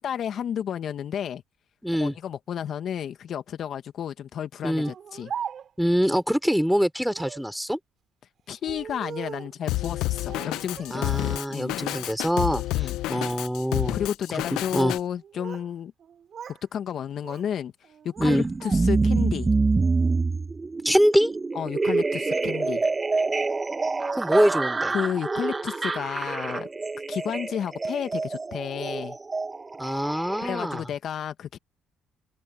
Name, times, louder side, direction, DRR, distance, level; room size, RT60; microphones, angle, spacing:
voice 1, 0.0-1.4 2.0-5.3 8.5-11.2 11.5-11.8 12.7-13.0 13.9-15.9 16.7-17.7 18.0-19.5 21.5-22.8 24.9-26.7 27.1-29.2 30.4-31.6, left 9 dB, 60° left, 1.6 m, -32 dB
voice 2, 1.8-2.1 4.6-4.9 5.8-7.8 10.9-14.0 14.5-15.0 18.2-18.5 20.8-21.3 24.2-24.9 29.8-30.8, equal, ahead, 3.5 m, -24 dB
Speech, 4.8-5.9 7.1-7.5 8.5-9.6 10.3-11.1 11.4-12.1 12.5-12.9 13.6-13.9 15.0-15.7 16.0-16.6 16.9-17.5 17.8-19.1, right 8 dB, 55° right, 5.0 m, -40 dB
Drum kit, 9.7-15.0, left 17 dB, 75° left, 0.8 m, -29 dB
sound 1, 18.2-30.8, right 3 dB, 25° right, 1.7 m, -26 dB
supercardioid pair, 70°, 0 cm